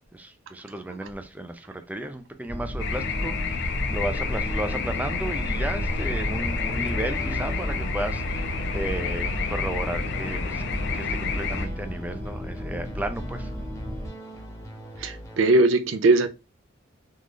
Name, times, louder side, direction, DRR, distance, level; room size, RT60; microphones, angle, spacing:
voice 1, 0.1-13.5, right 1 dB, 10° right, 0.4 m, -34 dB
sound 1, 2.5-14.1, equal, 25° right, 1.0 m, -33 dB
sound 2, 2.8-11.7, left 4 dB, 60° left, 0.5 m, -29 dB
sound 3, 4.0-15.5, right 1 dB, 15° left, 0.7 m, -41 dB
voice 2, 15.0-16.3, right 2 dB, 70° right, 0.4 m, -20 dB
3.8 x 2.4 x 3.1 m
head